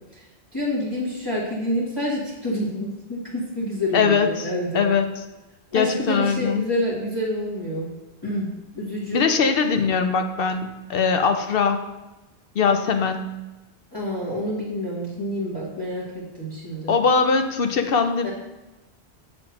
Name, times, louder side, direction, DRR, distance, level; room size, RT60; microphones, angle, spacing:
voice 1, 0.5-4.8 5.7-7.9 8.2-8.5 8.7-9.2 13.9-16.9 18.2-18.3, equal, 25° left, -8 dB, 1.6 m, -28 dB
voice 2, 3.9-4.5 4.7-5.1 5.7-6.7 9.1-11.8 12.6-13.3 16.9-18.3, left 5 dB, 65° left, 7 dB, 0.8 m, -21 dB
7.1 x 3.5 x 5.7 m, 1.0 s
omnidirectional pair, 1.1 m